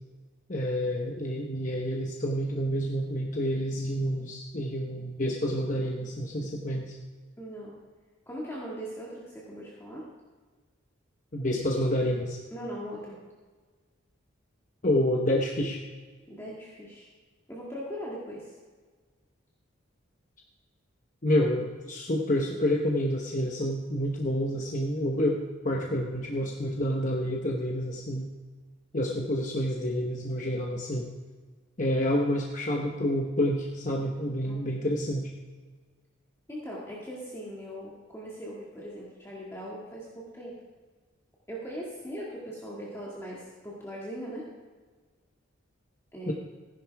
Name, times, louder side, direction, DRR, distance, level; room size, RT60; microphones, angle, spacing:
voice 1, 0.5-7.0 11.3-12.4 14.8-15.8 21.2-28.3 28.9-31.1 31.8-35.3 46.3-46.4, equal, 40° left, 0 dB, 1.0 m, -28 dB
voice 2, 7.4-7.8 8.3-10.0 12.5-13.2 16.3-17.1 17.5-18.5 25.7-25.8 34.4-34.9 36.5-40.6 41.5-44.5 46.1-46.3, equal, 15° left, -5 dB, 2.0 m, -40 dB
15.5 x 10.5 x 3.5 m, 1.4 s
head